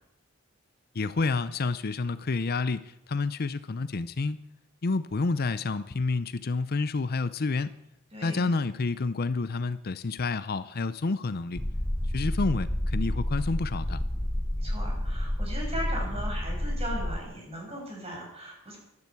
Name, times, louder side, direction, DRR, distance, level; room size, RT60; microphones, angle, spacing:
voice 1, 0.9-4.4 4.8-7.7 8.2-11.6 12.1-14.0, left 3 dB, 50° left, 14 dB, 0.6 m, -29 dB
voice 2, 8.1-8.5 14.6-18.8, equal, 30° right, -1 dB, 6.7 m, -38 dB
sound 1, 11.6-17.2, left 1 dB, 10° left, 0.8 m, -30 dB
12.5 x 12.0 x 8.4 m, 0.84 s
head